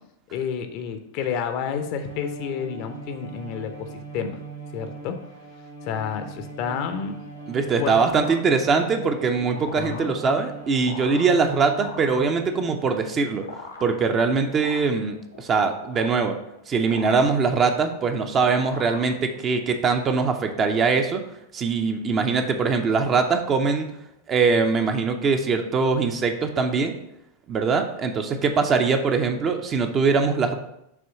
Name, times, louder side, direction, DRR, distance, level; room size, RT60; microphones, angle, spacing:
voice 1, 0.3-3.9 4.1-4.4 4.7-5.2 5.8-7.2 7.8-8.0 9.5-10.1, left 7 dB, 45° left, 7 dB, 0.7 m, -30 dB
Bowed string instrument, 2.0-13.2, right 3 dB, 80° right, 1.1 m, -40 dB
sound 1, 7.3-19.7, left 3 dB, 85° left, 1.0 m, -42 dB
voice 2, 7.5-13.5 13.8-16.3 16.7-21.2 21.5-23.9 24.3-27.0 27.5-30.6, right 4 dB, 25° right, 6 dB, 0.7 m, -22 dB
7.0 x 3.1 x 5.8 m, 0.82 s
figure-of-eight pair, 90°, 0 cm